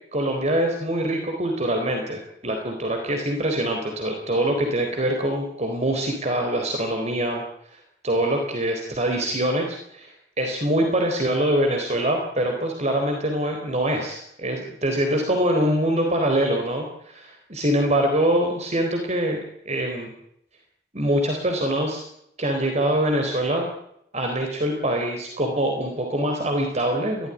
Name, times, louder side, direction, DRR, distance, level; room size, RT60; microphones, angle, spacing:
voice 1, 0.1-7.4 8.0-19.4 19.7-20.1 20.9-22.0 22.4-23.7 24.1-27.3, right 1 dB, 40° right, 3 dB, 4.0 m, -24 dB
23.0 x 17.0 x 10.0 m, 0.74 s
head